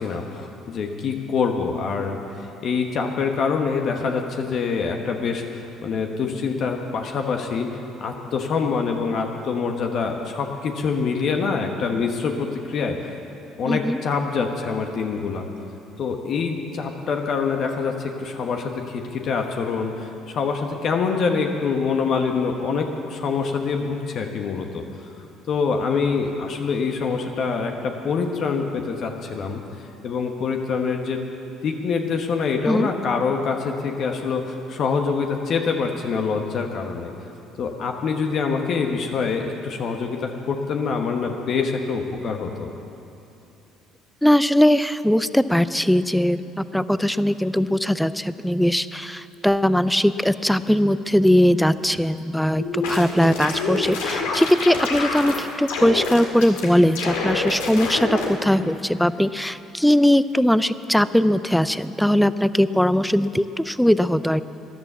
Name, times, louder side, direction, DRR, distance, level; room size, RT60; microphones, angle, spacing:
voice 1, 0.0-2.2 2.6-13.1 13.6-15.4 16.0-24.8 25.5-29.6 30.0-31.3 31.6-37.1 37.6-42.7, left 5 dB, 55° left, 3 dB, 1.2 m, -25 dB
voice 2, 13.7-14.0 32.6-32.9 44.2-64.4, equal, 5° left, 14 dB, 0.5 m, -20 dB
sound 1, 52.6-55.4 55.7-56.7 56.9-58.3, left 4 dB, 80° left, 1.8 m, -26 dB
14.0 x 11.0 x 7.3 m, 2.9 s
hypercardioid pair, 65°, 0 cm